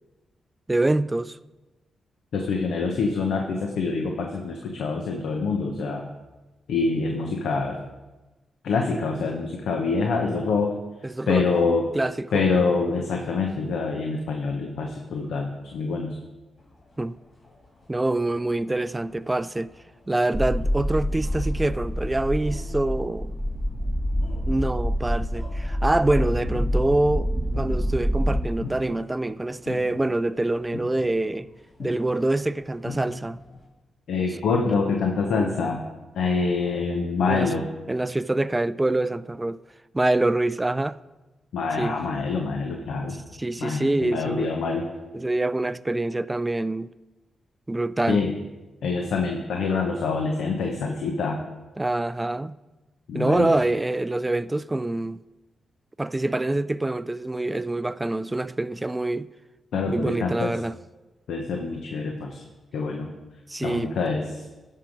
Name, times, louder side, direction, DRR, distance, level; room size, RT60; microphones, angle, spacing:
voice 1, 0.7-1.4 11.0-11.4 11.9-12.4 17.0-17.2 17.9-19.7 20.1-23.3 24.4-27.3 27.6-31.5 31.8-33.4 37.3-37.5 37.9-39.6 39.9-41.0 41.8-42.0 43.1-44.5 45.1-46.9 47.7-48.2 51.8-52.6 53.1-55.2 56.0-59.3 59.9-60.7 63.5-63.9, right 2 dB, 15° right, 0.3 m, -25 dB
voice 2, 2.3-6.1 6.7-7.8 8.6-10.7 11.3-11.9 12.3-16.1 34.1-35.8 36.1-37.7 41.5-43.2 43.6-44.8 48.1-48.3 48.8-51.4 53.1-53.5 59.7-60.5 61.3-62.4 62.7-63.1 63.6-64.4, left 4 dB, 90° left, 0.9 m, -25 dB
sound 1, 16.6-33.7, left 2 dB, 45° left, 3.7 m, -44 dB
sound 2, 20.3-28.5, equal, 10° left, 0.9 m, -26 dB
12.0 x 5.7 x 5.1 m
cardioid pair, 85°, 0 cm